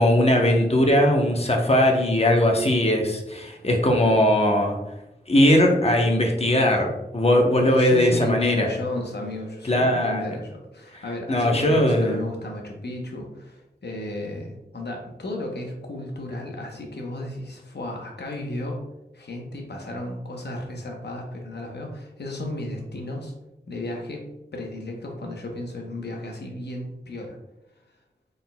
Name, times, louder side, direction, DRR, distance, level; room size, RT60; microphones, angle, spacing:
voice 1, 0.0-4.8 5.3-8.7 9.6-10.4 10.9-11.0 11.3-12.2, left 1 dB, 35° left, 2 dB, 0.8 m, -20 dB
voice 2, 7.6-18.8 19.1-23.3 23.7-27.4, left 1 dB, 70° left, 1 dB, 0.9 m, -34 dB
4.0 x 3.8 x 2.2 m, 0.92 s
cardioid pair, 45°, 18 cm